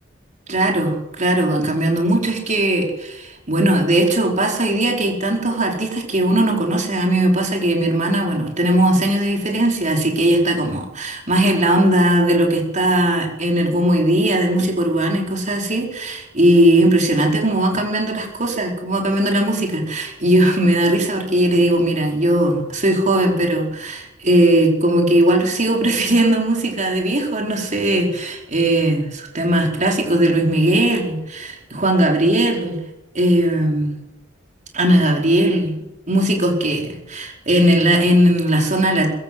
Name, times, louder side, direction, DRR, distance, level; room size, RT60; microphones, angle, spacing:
voice 1, 0.5-32.8 33.1-33.9 34.7-39.1, right 1 dB, 40° right, 1 dB, 4.9 m, -18 dB
21.5 x 15.5 x 8.1 m, 0.95 s
head